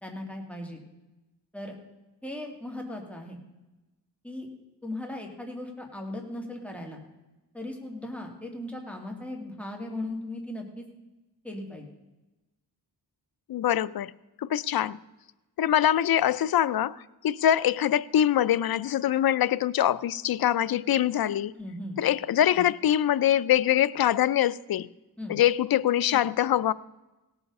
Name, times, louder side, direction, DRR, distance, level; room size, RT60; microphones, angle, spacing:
voice 1, 0.0-0.8 1.5-1.8 2.2-3.4 4.2-4.5 4.8-7.0 7.5-10.9 11.4-11.9 21.6-22.0 25.2-25.4, left 1 dB, 5° left, 2.3 m, -37 dB
voice 2, 13.5-14.1 14.4-15.0 15.6-17.0 17.2-21.5 22.0-24.9 25.3-26.7, left 11 dB, 60° left, 0.5 m, -24 dB
17.5 x 7.1 x 5.4 m
wide cardioid pair, 85°, 41 cm